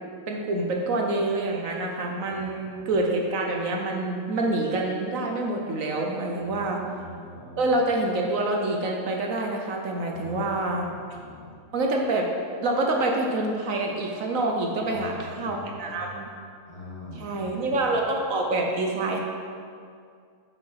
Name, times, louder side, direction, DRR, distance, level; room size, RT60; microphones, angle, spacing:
voice 1, 0.3-6.8 7.6-10.9 11.7-12.3 12.6-16.3 17.1-19.2, right 2 dB, 65° right, 1 dB, 1.2 m, -26 dB
voice 2, 2.2-2.9 6.4-7.7 10.1-11.5 14.8-15.9 16.7-18.0, left 1 dB, 25° left, -5 dB, 1.5 m, -44 dB
7.5 x 6.2 x 5.6 m, 2.2 s
omnidirectional pair, 1.6 m